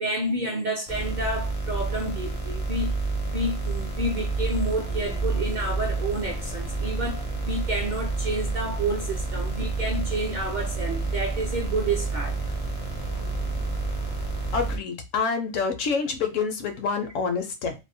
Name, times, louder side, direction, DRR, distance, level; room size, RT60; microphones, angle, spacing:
voice 1, 0.0-2.9 3.2-12.4, right 1 dB, 55° right, 0.5 m, -30 dB
sound 1, 0.9-14.8, right 3 dB, 45° left, 0.4 m, -29 dB
sound 2, 3.1-14.7, right 4 dB, 80° right, 1.0 m, -42 dB
voice 2, 14.5-17.7, left 5 dB, 70° left, 0.9 m, -27 dB
2.7 x 2.0 x 2.5 m
omnidirectional pair, 1.4 m